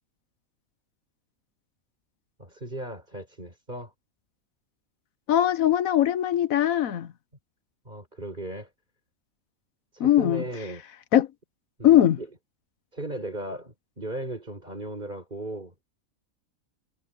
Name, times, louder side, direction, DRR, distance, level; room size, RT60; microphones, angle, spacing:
voice 1, 2.4-3.9 7.8-8.7 9.9-10.8 11.8-12.3 12.9-15.7, right 1 dB, 35° right, 5.7 m, -36 dB
voice 2, 5.3-7.1 10.0-10.4 11.1-11.3 11.8-12.2, left 11 dB, 85° left, 1.3 m, -20 dB
omnidirectional pair, 1.4 m